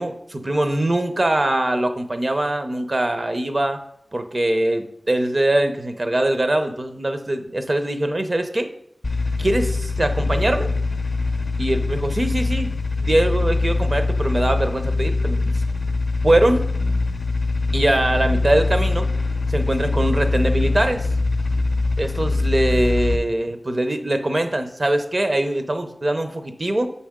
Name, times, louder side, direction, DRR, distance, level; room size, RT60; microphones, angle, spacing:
voice 1, 0.0-3.8 4.1-8.7 9.4-10.7 11.6-12.7 13.0-15.5 16.2-16.7 17.7-19.1 19.5-21.1 22.0-26.9, right 1 dB, 45° right, 7 dB, 0.7 m, -22 dB
sound 1, 9.0-23.2, left 3 dB, 45° left, 0.5 m, -23 dB
7.1 x 4.2 x 3.6 m, 0.72 s
wide cardioid pair, 60°, 0 cm